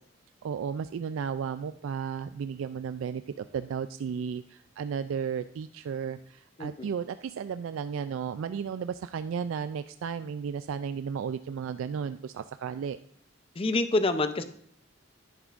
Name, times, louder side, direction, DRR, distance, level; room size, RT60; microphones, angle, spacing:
voice 1, 0.4-13.0, right 7 dB, 75° right, 11 dB, 0.3 m, -34 dB
voice 2, 13.6-14.4, left 2 dB, 30° left, 10 dB, 0.5 m, -27 dB
10.5 x 10.5 x 2.5 m, 0.62 s
head